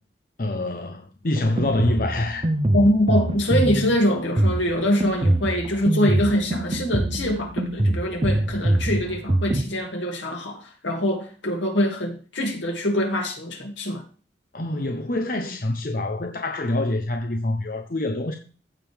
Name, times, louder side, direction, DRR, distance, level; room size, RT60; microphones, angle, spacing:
voice 1, 0.4-2.4 14.5-18.3, left 2 dB, 50° left, 0.8 m, -26 dB
Drum kit, 1.4-9.7, right 1 dB, 30° right, 0.6 m, -24 dB
voice 2, 2.7-14.0, equal, 85° left, 2.5 m, -24 dB
15.0 x 5.3 x 3.5 m
head